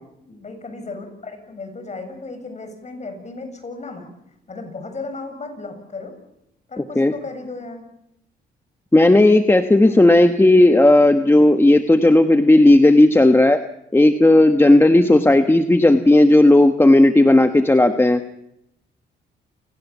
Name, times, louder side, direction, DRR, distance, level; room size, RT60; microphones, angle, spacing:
voice 1, 0.2-4.1 4.5-6.1 6.7-7.9 9.6-10.0, left 3 dB, 35° left, 6 dB, 7.6 m, -35 dB
voice 2, 8.9-13.6 13.9-18.2, left 1 dB, 10° left, 7 dB, 1.2 m, -13 dB
28.5 x 18.0 x 7.3 m, 0.83 s
cardioid pair, 90°, 20 cm